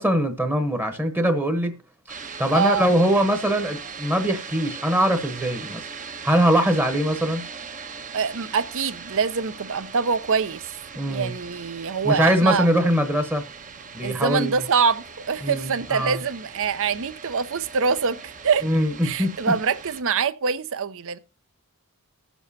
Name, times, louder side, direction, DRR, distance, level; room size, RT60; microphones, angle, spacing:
voice 1, 0.0-1.8 2.4-5.9 6.2-7.5 10.9-11.3 12.0-13.4 13.9-14.6 15.4-16.2 18.6-19.6, equal, 10° right, 1.0 m, -22 dB
sound 1, 2.1-20.0, right 5 dB, 35° right, 0.8 m, -40 dB
voice 2, 2.5-2.9 8.1-10.6 11.1-12.7 14.0-18.7 19.0-21.2, right 5 dB, 65° right, 0.7 m, -24 dB
19.5 x 7.1 x 2.8 m
head